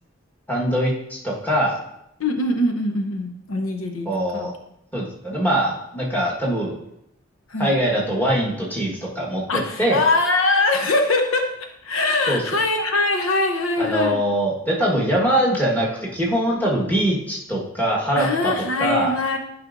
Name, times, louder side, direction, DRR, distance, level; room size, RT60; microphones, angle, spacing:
voice 1, 0.5-1.8 4.0-4.5 4.9-6.8 7.6-10.0 12.3-12.4 13.8-18.5 18.8-19.1, right 1 dB, 10° left, -4 dB, 1.3 m, -22 dB
voice 2, 2.2-4.5 7.5-7.8 9.5-14.2 18.2-19.4, left 2 dB, 85° left, 5 dB, 0.7 m, -22 dB
11.0 x 5.0 x 2.5 m, 0.79 s
head